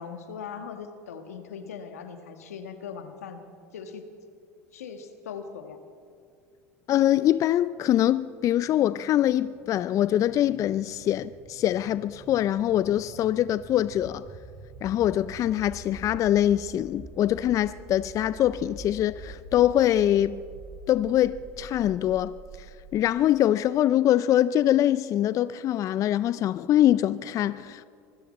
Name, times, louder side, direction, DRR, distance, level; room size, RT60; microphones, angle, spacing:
voice 1, 0.0-3.4 3.7-4.0 4.7-5.8, left 6 dB, 85° left, 1.5 m, -40 dB
voice 2, 6.9-14.2 14.8-20.4 20.9-22.3 22.9-27.8, left 12 dB, 45° left, 0.4 m, -23 dB
sound 1, 7.3-23.2, right 4 dB, 50° right, 3.6 m, -46 dB
24.5 x 13.5 x 4.3 m
hypercardioid pair, 85°, 8 cm